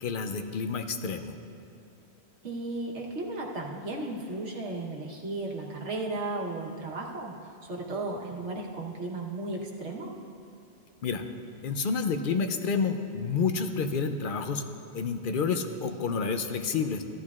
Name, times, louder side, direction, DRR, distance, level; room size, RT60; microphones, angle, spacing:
voice 1, 0.0-1.4 11.0-11.2 11.6-14.6 14.9-17.0, left 5 dB, 60° left, 7 dB, 0.7 m, -29 dB
voice 2, 2.4-7.3 7.6-10.1, right 2 dB, 90° right, -1 dB, 1.4 m, -35 dB
14.0 x 12.0 x 2.4 m, 2.4 s
omnidirectional pair, 1.1 m